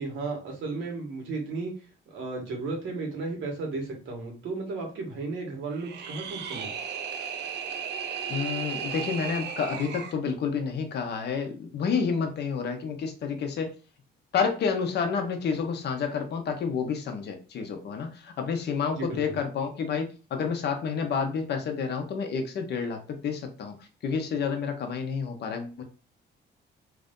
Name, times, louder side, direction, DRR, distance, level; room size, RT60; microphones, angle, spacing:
voice 1, 0.0-1.7 2.1-6.7 19.0-19.4, right 3 dB, 85° right, 1 dB, 1.5 m, -34 dB
sound 1, 5.7-10.2, right 7 dB, 65° right, 0.5 m, -35 dB
voice 2, 8.3-13.7 14.3-23.8 24.0-25.8, left 6 dB, 60° left, 5 dB, 0.9 m, -29 dB
3.3 x 2.6 x 3.6 m, 0.35 s
cardioid pair, 145°, 19 cm